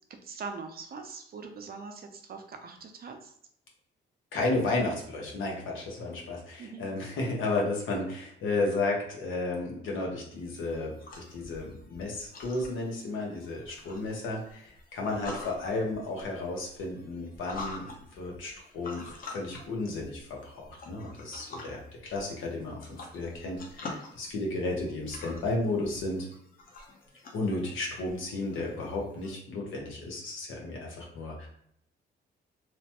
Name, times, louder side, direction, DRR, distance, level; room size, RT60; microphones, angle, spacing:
voice 1, 0.2-3.3 6.6-6.9, right 4 dB, 50° right, 5 dB, 0.6 m, -42 dB
voice 2, 4.3-17.9 18.2-26.3 27.3-31.5, left 2 dB, 80° left, -1 dB, 1.0 m, -33 dB
sound 1, 10.4-29.3, left 2 dB, 45° left, 0.8 m, -47 dB
3.0 x 2.1 x 2.9 m, 0.70 s
cardioid pair, 90°, 20 cm